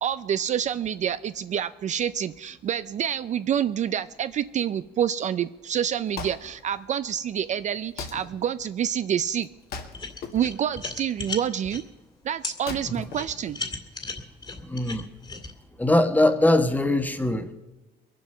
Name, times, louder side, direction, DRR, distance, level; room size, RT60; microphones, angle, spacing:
voice 1, 0.0-9.5 10.3-11.8 12.2-13.6, right 9 dB, 45° right, 13 dB, 0.4 m, -27 dB
Wood, 5.7-14.1, left 5 dB, 65° left, 2.0 m, -42 dB
sound 1, 9.9-11.8 12.4-12.6 13.1-15.5, left 3 dB, 25° left, 2.1 m, -35 dB
voice 2, 14.6-15.0 15.8-17.5, left 1 dB, 10° left, 9 dB, 1.2 m, -21 dB
22.0 x 7.6 x 6.6 m, 1.1 s
cardioid pair, 110°, 17 cm